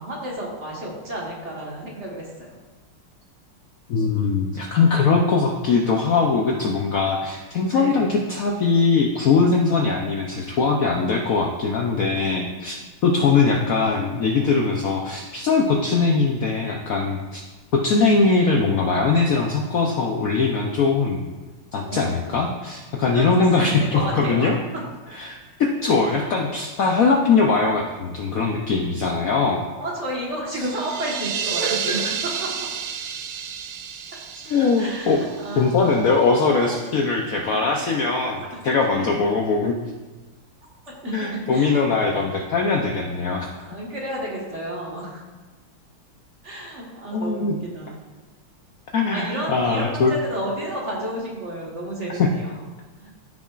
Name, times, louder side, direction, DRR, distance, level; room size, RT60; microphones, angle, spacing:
voice 1, 0.0-2.5 7.7-8.1 13.1-13.3 21.8-22.6 23.1-24.5 29.8-32.0 32.4-32.5 34.8-35.8 36.6-36.7 38.9-39.0 40.9-41.8 43.6-45.2 46.4-48.0 49.1-52.5 53.0-53.1, right 1 dB, 35° right, -3 dB, 1.6 m, -31 dB
voice 2, 3.9-17.4 17.7-21.2 21.7-24.6 25.1-29.7 31.6-31.7 34.4-35.2 35.6-39.8 41.1-43.5 47.1-47.6 48.9-50.1 52.1-52.3, left 4 dB, 85° left, 1 dB, 0.7 m, -21 dB
sound 1, 30.6-36.2, right 7 dB, 85° right, 1.6 m, -30 dB
14.5 x 6.0 x 2.5 m, 1.3 s
omnidirectional pair, 2.4 m